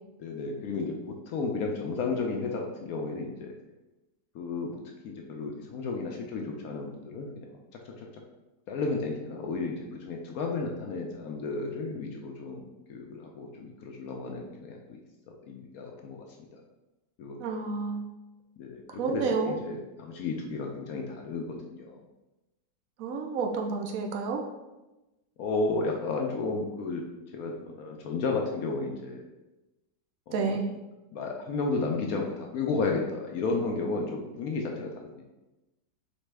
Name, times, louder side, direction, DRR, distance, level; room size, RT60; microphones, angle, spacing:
voice 1, 0.2-3.5 4.3-7.5 8.0-8.1 8.7-15.0 15.4-16.2 16.5-16.6 17.2-17.4 18.6-22.0 25.4-27.0 27.3-29.2 30.3-30.6 31.1-34.9, left 3 dB, 70° left, 1 dB, 0.9 m, -33 dB
voice 2, 17.4-18.1 18.9-19.5 23.0-24.4 30.3-30.7, right 4 dB, 65° right, 3 dB, 0.9 m, -30 dB
4.0 x 3.5 x 3.3 m, 1.0 s
omnidirectional pair, 1.9 m